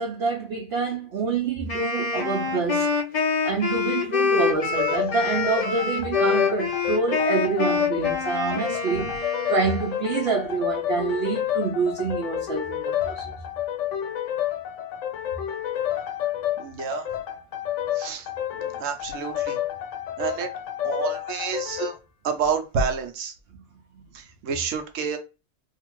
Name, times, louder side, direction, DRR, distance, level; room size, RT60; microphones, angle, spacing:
voice 1, 0.0-3.0 3.4-13.4 18.6-18.7, right 4 dB, 65° right, 0.7 m, -27 dB
Wind instrument woodwind instrument, 1.7-10.1, left 5 dB, 40° left, 0.8 m, -26 dB
sound 1, 4.6-22.0, left 11 dB, 80° left, 0.9 m, -30 dB
voice 2, 16.6-17.1 17.9-18.3 18.8-19.6 20.2-20.5 20.8-22.0 22.2-23.3 24.1-25.2, right 6 dB, 85° right, 1.0 m, -29 dB
2.7 x 2.5 x 2.9 m
omnidirectional pair, 1.3 m